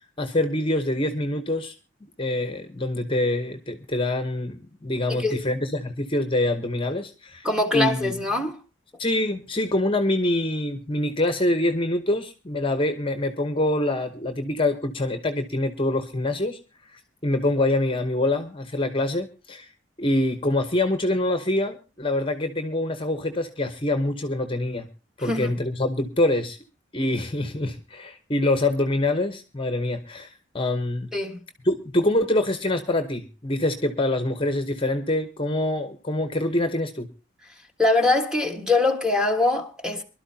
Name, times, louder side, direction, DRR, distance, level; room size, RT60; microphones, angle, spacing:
voice 1, 0.2-1.7 2.2-7.5 7.7-8.1 9.0-16.6 16.9-19.7 20.0-24.9 25.2-26.6 26.9-31.1 31.6-37.1, left 1 dB, 30° left, 1.0 m, -25 dB
voice 2, 5.1-5.4 7.4-8.6 25.2-25.5 31.1-31.4 37.8-40.0, left 2 dB, 5° right, 1.5 m, -23 dB
24.0 x 12.0 x 2.8 m
head